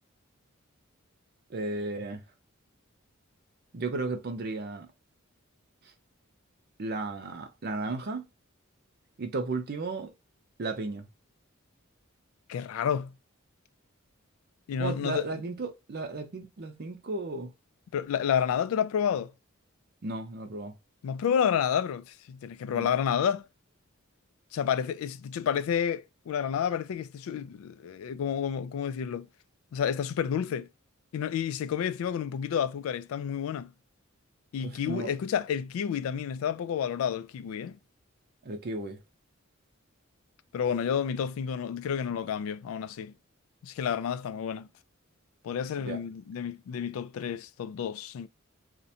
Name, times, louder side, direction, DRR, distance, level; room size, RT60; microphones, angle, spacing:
voice 1, 1.5-2.2 3.7-4.9 6.8-8.2 9.2-10.1 10.6-11.1 14.8-17.5 20.0-20.7 22.7-22.9 34.6-35.1 38.4-39.0 45.8-46.0, right 3 dB, 50° right, 0.5 m, -34 dB
voice 2, 12.5-13.1 14.7-15.3 17.9-19.3 21.0-23.5 24.5-29.3 29.7-30.7 31.1-33.7 34.5-37.8 40.5-43.1 43.6-44.7 45.4-48.3, left 8 dB, 85° left, 0.3 m, -30 dB
2.5 x 2.1 x 2.7 m
head